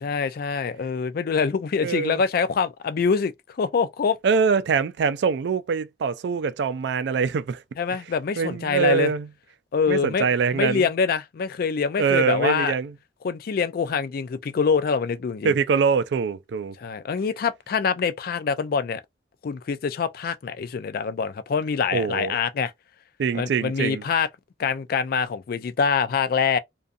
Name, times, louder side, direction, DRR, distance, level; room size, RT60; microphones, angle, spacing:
voice 1, 0.0-3.3 3.6-4.2 7.8-9.1 9.7-10.3 10.5-12.7 13.2-15.6 16.8-19.0 19.4-22.7 23.3-24.3 24.6-26.6, left 5 dB, 55° left, 0.4 m, -25 dB
voice 2, 1.8-2.2 4.2-7.6 8.4-9.3 9.9-10.9 12.0-12.9 15.4-16.8 21.9-22.4 23.2-24.0, right 5 dB, 70° right, 0.3 m, -23 dB
2.5 x 2.3 x 2.4 m
head